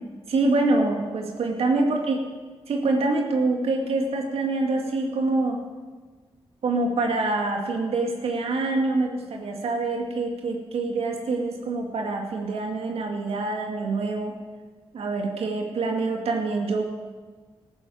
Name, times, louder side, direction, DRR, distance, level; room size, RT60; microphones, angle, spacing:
voice 1, 0.3-2.2 2.7-5.6 6.6-14.4 14.9-16.8, right 3 dB, 80° right, 2 dB, 2.2 m, -25 dB
14.5 x 11.5 x 8.5 m, 1.5 s
cardioid pair, 60°, 10 cm